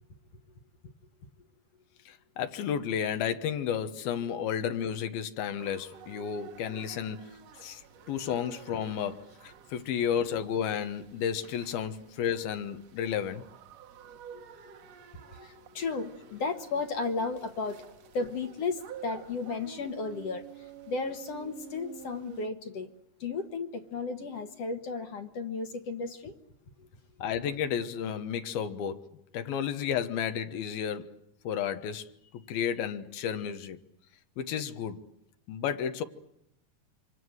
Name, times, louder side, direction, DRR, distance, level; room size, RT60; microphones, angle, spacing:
voice 1, 2.1-7.8 8.1-13.4 27.2-31.2 31.4-32.0 32.5-33.8 34.4-35.0 35.5-36.0, left 8 dB, 75° left, 3.0 m, -32 dB
sound 1, 5.6-22.5, right 9 dB, 60° right, 1.9 m, -50 dB
voice 2, 15.3-17.9 18.1-22.9 23.2-26.3, left 4 dB, 55° left, 2.0 m, -34 dB
27.5 x 25.5 x 7.9 m
omnidirectional pair, 4.4 m